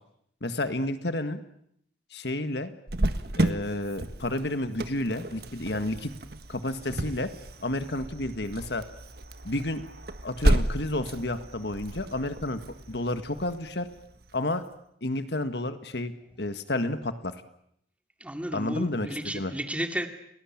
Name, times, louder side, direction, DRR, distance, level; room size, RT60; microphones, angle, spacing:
voice 1, 0.4-1.4 2.1-2.7 3.4-6.1 6.5-7.3 7.6-8.8 9.4-9.8 10.2-12.6 12.9-13.9 14.3-14.6 15.0-16.1 16.4-17.3 18.5-19.1 19.3-19.5, left 1 dB, 65° left, 10 dB, 1.8 m, -30 dB
Cricket, 2.9-14.3, right 1 dB, 60° right, 1.6 m, -32 dB
voice 2, 18.2-20.1, right 1 dB, 5° right, 6 dB, 2.4 m, -33 dB
29.5 x 19.5 x 8.8 m, 0.72 s
head